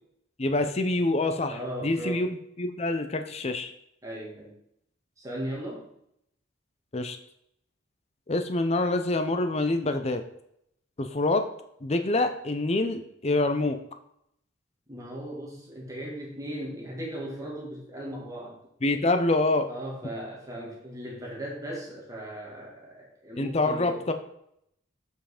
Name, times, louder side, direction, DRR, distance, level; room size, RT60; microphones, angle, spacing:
voice 1, 0.4-3.7 6.9-7.2 8.3-10.2 11.0-11.5 11.8-13.8 18.8-19.7 23.4-24.1, left 2 dB, 35° left, 7 dB, 0.6 m, -26 dB
voice 2, 1.5-2.2 4.0-4.5 5.2-5.9 14.9-18.6 19.7-24.1, right 1 dB, 15° right, -4 dB, 2.3 m, -37 dB
7.5 x 5.8 x 5.0 m, 0.73 s
head